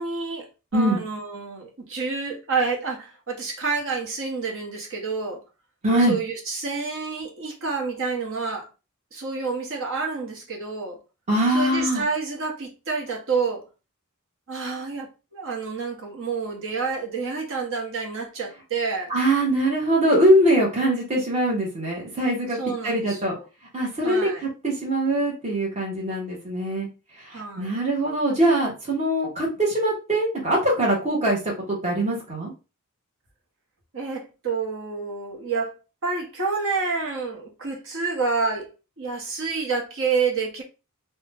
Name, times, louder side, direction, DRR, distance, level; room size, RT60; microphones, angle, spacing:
voice 1, 0.0-5.4 6.0-8.7 9.1-11.0 11.5-13.7 14.5-19.1 22.5-23.5 24.0-24.4 27.3-27.8 33.9-35.7 36.0-38.7 39.0-40.6, right 4 dB, 60° right, 1.0 m, -28 dB
voice 2, 5.8-6.2 11.3-12.0 19.1-22.6 22.8-23.3 23.7-24.2 24.6-26.9 27.3-31.4 31.7-32.5, right 1 dB, 30° right, 1.0 m, -22 dB
2.7 x 2.2 x 3.3 m
head